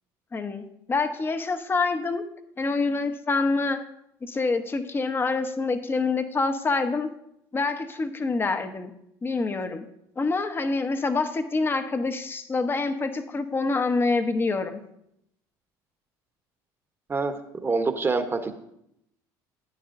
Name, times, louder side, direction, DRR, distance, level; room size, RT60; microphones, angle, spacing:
voice 1, 0.3-2.2 2.6-3.9 4.2-7.1 7.5-8.9 9.2-9.9 10.2-14.8, left 3 dB, 25° left, 9 dB, 0.9 m, -26 dB
voice 2, 17.6-18.6, right 4 dB, 25° right, 7 dB, 1.0 m, -25 dB
15.0 x 9.3 x 2.6 m, 0.78 s
supercardioid pair, 95°, 9 cm